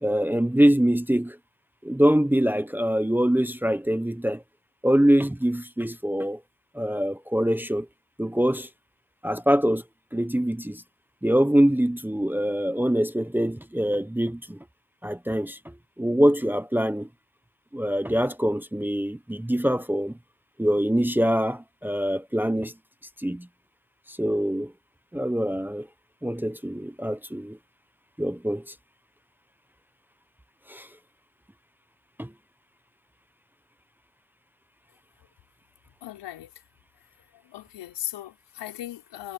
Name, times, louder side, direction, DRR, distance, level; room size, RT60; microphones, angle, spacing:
voice 1, 0.0-1.4 1.8-4.4 4.8-6.4 6.7-7.9 8.2-8.7 9.2-9.8 10.1-10.8 11.2-14.6 15.0-17.1 17.7-20.2 20.6-22.7 23.2-23.5 24.1-24.7 25.1-25.9 26.2-27.6 28.2-28.7 30.7-30.9 32.2-32.3, equal, 5° right, 0.9 m, -24 dB
voice 2, 36.0-36.5 37.3-39.3, left 13 dB, 90° left, 5.3 m, -37 dB
cardioid pair, 100°, 40 cm